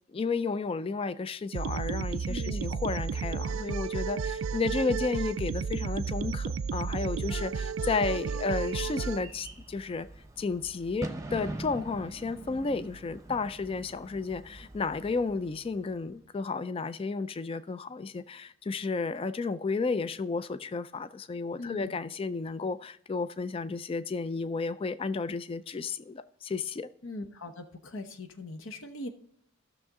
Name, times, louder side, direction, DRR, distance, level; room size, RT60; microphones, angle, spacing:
voice 1, 0.1-10.1 10.4-26.9, left 4 dB, 25° left, 0.3 m, -32 dB
sound 1, 1.5-9.2, right 5 dB, 70° right, 0.4 m, -32 dB
voice 2, 2.3-2.8 21.6-21.9 27.0-29.1, left 2 dB, 70° left, 0.9 m, -40 dB
Bird / Fireworks, 7.0-16.2, right 2 dB, 15° right, 0.8 m, -44 dB
14.5 x 6.4 x 3.6 m
head